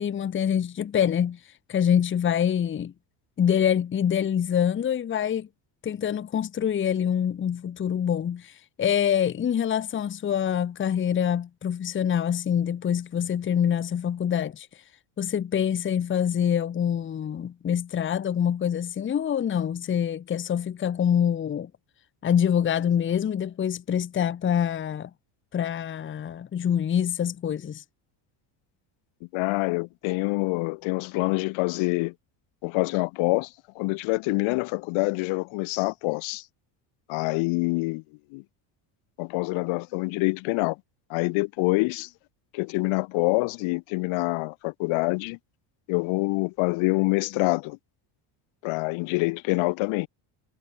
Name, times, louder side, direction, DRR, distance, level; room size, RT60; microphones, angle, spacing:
voice 1, 0.0-1.4 1.7-2.9 3.4-5.5 5.8-14.7 15.2-21.7 22.2-25.1 25.5-27.8, left 9 dB, 25° left, 0.9 m, -25 dB
voice 2, 29.3-32.1 32.6-36.4 37.1-38.0 38.3-38.4 39.2-40.8 41.1-42.1 42.5-45.4 45.9-47.8 48.6-50.1, left 26 dB, 75° left, 1.3 m, -26 dB
cardioid pair, 130°, 48 cm